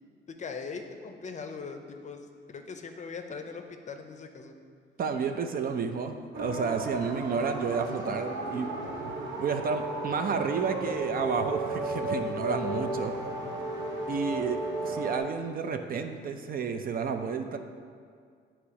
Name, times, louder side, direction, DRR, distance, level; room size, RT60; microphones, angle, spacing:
voice 1, 0.4-4.6, left 5 dB, 35° left, 5 dB, 0.6 m, -40 dB
voice 2, 5.0-8.7 9.4-13.2 14.1-17.6, right 5 dB, 50° right, 7 dB, 0.5 m, -31 dB
sound 1, 6.3-15.2, right 1 dB, 70° right, 1.1 m, -34 dB
8.3 x 3.0 x 4.7 m, 2.1 s
cardioid pair, 90°, 20 cm